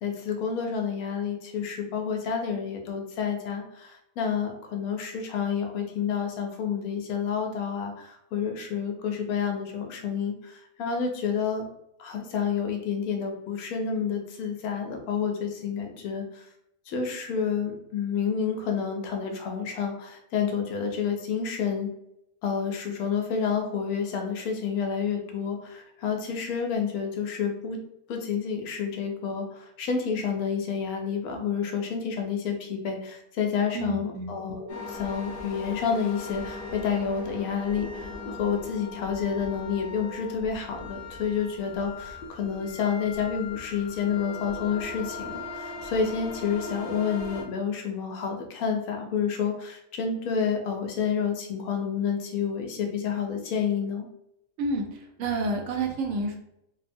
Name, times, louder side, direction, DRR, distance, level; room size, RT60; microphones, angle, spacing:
voice 1, 0.0-11.6 12.0-16.4 16.9-21.9 22.4-27.8 28.1-54.1, left 6 dB, 75° left, 3 dB, 1.0 m, -29 dB
voice 2, 33.7-34.4 54.6-54.8 55.2-56.4, right 2 dB, 65° right, 2 dB, 0.9 m, -29 dB
sound 1, 34.7-47.4, left 3 dB, 60° left, 0.6 m, -39 dB
3.1 x 2.1 x 2.5 m, 0.78 s
omnidirectional pair, 1.6 m